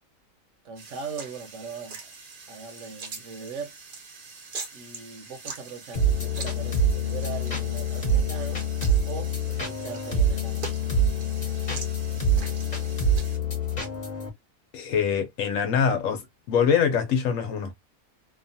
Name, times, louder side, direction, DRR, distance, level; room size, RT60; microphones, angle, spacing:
voice 1, 0.6-2.1 2.5-3.7 4.7-8.7 9.1-10.7, right 5 dB, 65° right, 1.0 m, -39 dB
sound 1, 0.8-13.4, right 4 dB, 50° right, 0.7 m, -43 dB
sound 2, 5.9-14.3, right 1 dB, 35° left, 1.1 m, -26 dB
voice 2, 14.7-16.2 16.5-17.7, left 7 dB, 75° left, 1.1 m, -24 dB
2.8 x 2.3 x 2.6 m
omnidirectional pair, 1.4 m